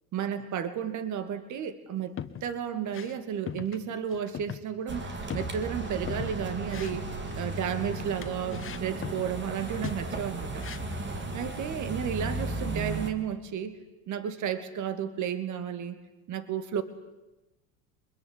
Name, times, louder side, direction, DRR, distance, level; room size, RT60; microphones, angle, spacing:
voice 1, 0.1-7.0 7.3-10.7 11.3-13.8 14.1-16.0 16.3-16.8, right 8 dB, 45° right, 11 dB, 2.5 m, -33 dB
sound 1, 2.0-2.5 2.8-3.2 3.5-3.8 4.1-4.6 4.9-5.0 5.3-6.4 6.7-7.5 8.2-9.3 9.7-10.1 10.6-11.0, left 9 dB, 30° left, 1.5 m, -40 dB
sound 2, 4.9-13.1, right 2 dB, 25° right, 3.5 m, -35 dB
25.5 x 21.5 x 9.8 m, 0.98 s
hypercardioid pair, 95°, 40 cm